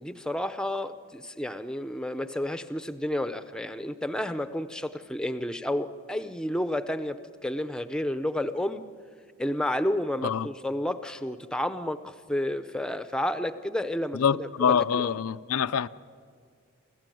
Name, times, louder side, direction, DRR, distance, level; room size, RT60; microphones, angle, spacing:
voice 1, 0.0-8.8 9.4-15.2, left 1 dB, 5° left, 0.6 m, -31 dB
voice 2, 14.1-15.9, left 7 dB, 85° left, 0.5 m, -25 dB
27.5 x 15.5 x 9.2 m
head